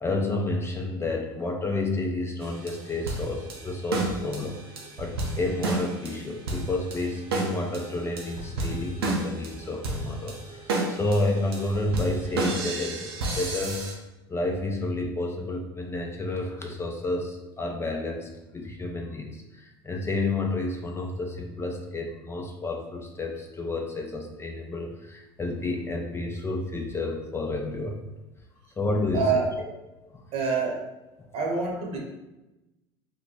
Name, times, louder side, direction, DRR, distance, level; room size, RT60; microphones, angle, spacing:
voice 1, 0.0-4.6 5.0-13.8 14.3-28.0 28.8-29.3 30.1-30.2, left 2 dB, 20° left, 1 dB, 0.5 m, -30 dB
sound 1, 2.4-13.9, right 2 dB, 85° right, 0.7 m, -32 dB
voice 2, 29.1-29.7 30.3-30.9 31.3-32.0, right 5 dB, 50° right, 0 dB, 1.0 m, -26 dB
2.9 x 2.2 x 4.1 m, 1.0 s
hypercardioid pair, 80°, 13 cm